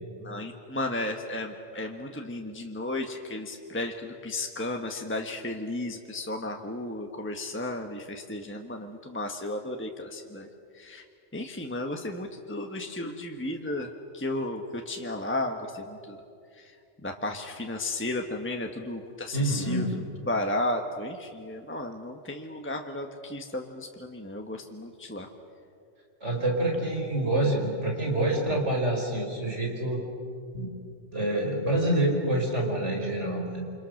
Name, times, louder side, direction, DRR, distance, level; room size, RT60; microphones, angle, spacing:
voice 1, 0.2-10.5 10.7-11.0 11.3-16.2 16.6-16.7 17.0-25.3, left 1 dB, 10° left, 3 dB, 1.3 m, -34 dB
voice 2, 19.3-19.9 26.2-30.0 30.5-30.7 31.1-33.6, right 1 dB, 85° right, 1 dB, 5.3 m, -27 dB
28.5 x 26.0 x 6.5 m, 2.4 s
omnidirectional pair, 1.2 m